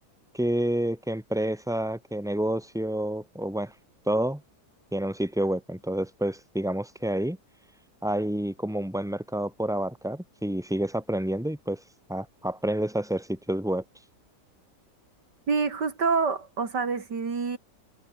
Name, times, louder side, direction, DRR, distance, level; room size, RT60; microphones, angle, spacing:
voice 1, 0.3-3.7 4.1-4.4 4.9-7.4 8.0-11.8 12.1-13.8, right 1 dB, ahead, 4.1 m, -29 dB
voice 2, 15.5-17.6, right 5 dB, 85° right, 3.4 m, -27 dB
omnidirectional pair, 1.8 m